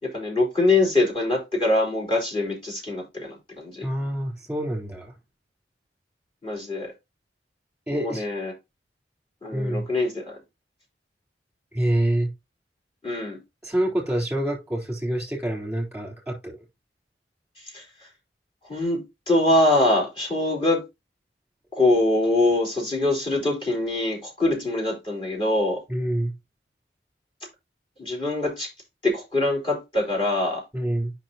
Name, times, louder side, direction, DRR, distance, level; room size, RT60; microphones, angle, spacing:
voice 1, 0.0-3.9 6.4-6.9 7.9-8.5 9.4-10.4 13.0-13.4 17.7-17.8 18.7-20.8 21.7-25.8 28.0-28.7 29.0-30.6, left 2 dB, 30° left, 4.2 m, -23 dB
voice 2, 3.8-5.1 7.9-8.3 9.5-9.9 11.7-12.3 13.6-16.5 25.9-26.3 30.7-31.1, right 1 dB, 5° right, 3.6 m, -26 dB
8.8 x 5.8 x 2.9 m
head